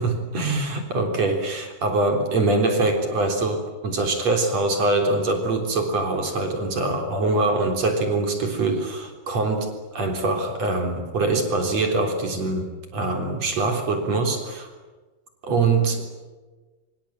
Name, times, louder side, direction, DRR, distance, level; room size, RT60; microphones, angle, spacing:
voice 1, 0.0-14.7 15.4-16.1, right 3 dB, 45° right, 4 dB, 4.7 m, -23 dB
25.5 x 25.0 x 9.0 m, 1.3 s
omnidirectional pair, 4.3 m